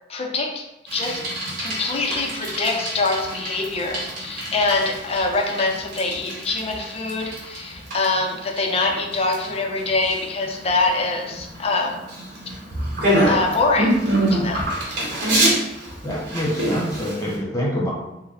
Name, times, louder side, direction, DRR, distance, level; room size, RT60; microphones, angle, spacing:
voice 1, 0.1-0.7 0.9-1.3 1.6-12.0 13.2-14.0 14.3-14.7, left 3 dB, 35° left, 2 dB, 0.5 m, -24 dB
Bicycle, 0.9-17.4, right 1 dB, 55° right, 1.4 m, -26 dB
voice 2, 16.0-17.9, equal, 20° left, -4 dB, 1.0 m, -25 dB
3.9 x 2.1 x 4.0 m, 0.92 s
head